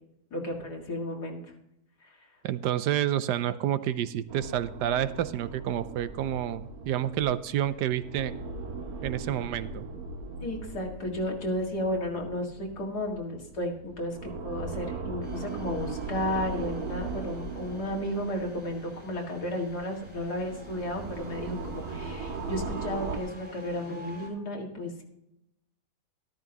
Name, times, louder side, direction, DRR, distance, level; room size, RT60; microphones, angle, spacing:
voice 1, 0.3-1.4 2.0-2.3 10.4-25.0, left 1 dB, 70° left, 0 dB, 2.7 m, -33 dB
voice 2, 2.4-8.3 9.0-9.8, right 11 dB, 80° right, 13 dB, 1.2 m, -29 dB
sound 1, 4.3-19.3 19.7-23.2, right 3 dB, 65° right, 2.0 m, -39 dB
sound 2, 15.2-24.3, equal, 5° right, 3.9 m, -49 dB
13.5 x 12.5 x 3.0 m, 0.84 s
omnidirectional pair, 1.8 m